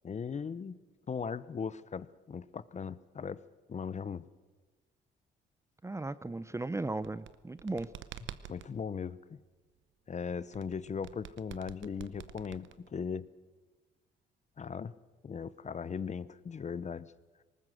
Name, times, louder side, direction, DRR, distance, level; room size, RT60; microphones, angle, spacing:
voice 1, 0.0-0.8 1.1-3.4 3.7-4.2 8.5-9.4 10.1-13.2 14.6-14.9 15.2-17.1, left 6 dB, 35° left, 17 dB, 0.8 m, -38 dB
voice 2, 5.8-7.9, right 2 dB, 15° right, 16 dB, 0.6 m, -36 dB
sound 1, 6.9-8.7 10.5-13.1, right 11 dB, 70° right, 0.9 m, -48 dB
19.5 x 19.0 x 7.7 m, 1.3 s
cardioid pair, 90°, 20 cm